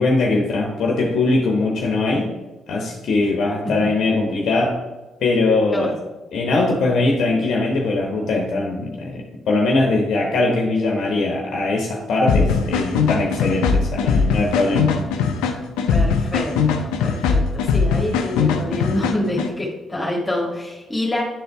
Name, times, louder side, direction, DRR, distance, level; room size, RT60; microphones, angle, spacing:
voice 1, 0.0-2.3 2.7-4.7 5.2-5.9 6.3-14.9, left 2 dB, 70° left, 1 dB, 1.0 m, -21 dB
sound 1, 12.3-19.5, left 5 dB, 85° left, 0.6 m, -20 dB
voice 2, 15.9-21.2, left 1 dB, 25° left, -1 dB, 1.8 m, -26 dB
10.0 x 3.9 x 3.5 m, 1.1 s
supercardioid pair, 55°, 0 cm